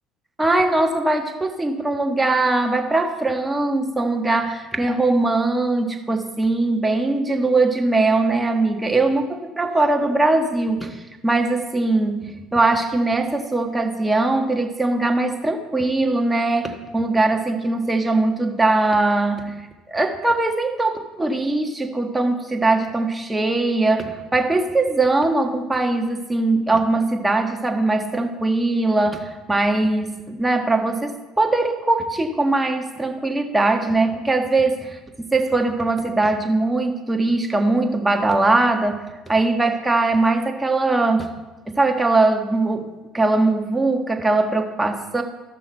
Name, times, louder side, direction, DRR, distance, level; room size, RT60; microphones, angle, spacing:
voice 1, 0.4-35.0 35.3-41.3 41.7-45.2, right 2 dB, 10° right, 4 dB, 1.4 m, -21 dB
14.0 x 6.2 x 4.5 m, 1.1 s
hypercardioid pair, 75°, 0 cm